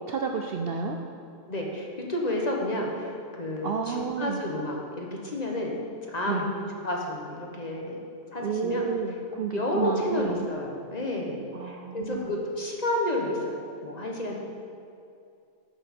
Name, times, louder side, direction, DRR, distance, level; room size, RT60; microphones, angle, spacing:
voice 1, 0.1-1.0 3.6-4.4 6.3-6.5 8.4-10.5 11.5-12.3, right 6 dB, 65° right, 3 dB, 0.6 m, -31 dB
voice 2, 1.5-5.8 6.1-8.0 8.3-8.9 9.5-14.4, left 1 dB, 35° left, -1 dB, 1.0 m, -30 dB
8.4 x 7.0 x 5.3 m, 2.5 s
omnidirectional pair, 1.3 m